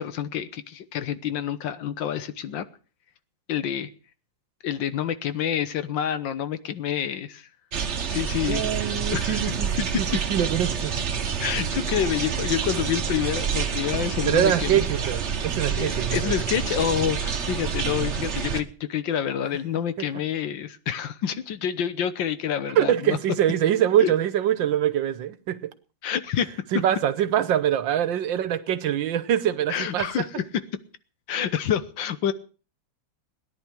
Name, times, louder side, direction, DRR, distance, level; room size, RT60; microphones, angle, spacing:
voice 1, 0.0-2.7 3.5-3.9 4.6-7.5 8.1-8.7 9.1-9.4 11.4-14.8 15.8-23.2 24.0-24.1 26.0-26.5 29.7-30.4 31.3-32.3, left 9 dB, 75° left, 1.7 m, -28 dB
sound 1, 7.7-18.6, right 6 dB, 40° right, 1.2 m, -28 dB
voice 2, 8.5-9.7 9.9-10.9 14.3-16.3 22.8-25.7 26.7-30.1, right 10 dB, 80° right, 1.7 m, -24 dB
17.5 x 10.5 x 6.1 m
omnidirectional pair, 2.1 m